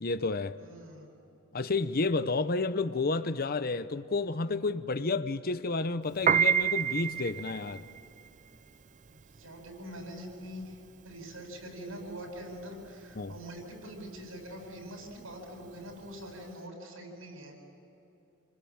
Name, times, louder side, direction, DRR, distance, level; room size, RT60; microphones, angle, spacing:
voice 1, 0.0-0.5 1.5-7.8 13.2-13.3, left 3 dB, 50° left, 0.8 m, -30 dB
voice 2, 0.6-1.1 9.4-10.8 11.0-17.5, equal, 85° right, 8.0 m, -44 dB
Piano, 6.1-16.5, right 7 dB, 40° right, 0.5 m, -31 dB
29.5 x 21.5 x 8.9 m
head